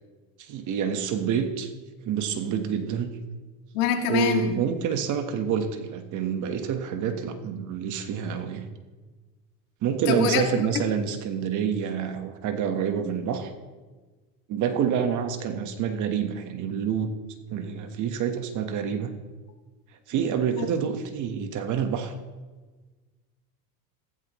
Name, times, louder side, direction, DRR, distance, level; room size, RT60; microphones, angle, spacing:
voice 1, 0.4-1.7 2.0-3.1 4.1-8.7 9.8-13.5 14.5-17.1 17.5-19.1 20.1-22.2, right 7 dB, 40° right, 7 dB, 1.3 m, -27 dB
voice 2, 3.7-4.5 10.1-10.4 20.5-20.7, left 8 dB, 70° left, 2 dB, 2.5 m, -25 dB
15.5 x 14.5 x 3.1 m, 1.3 s
supercardioid pair, 140°, 45 cm